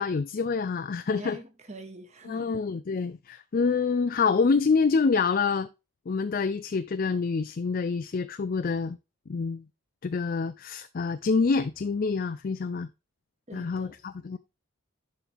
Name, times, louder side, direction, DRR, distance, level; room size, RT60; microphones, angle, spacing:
voice 1, 0.0-1.4 2.3-5.7 6.1-9.0 9.3-9.6 10.0-12.9 13.5-14.4, left 4 dB, 40° left, 0.4 m, -26 dB
voice 2, 1.1-2.5 13.5-14.0, right 2 dB, 30° right, 1.4 m, -44 dB
11.0 x 4.4 x 3.5 m
head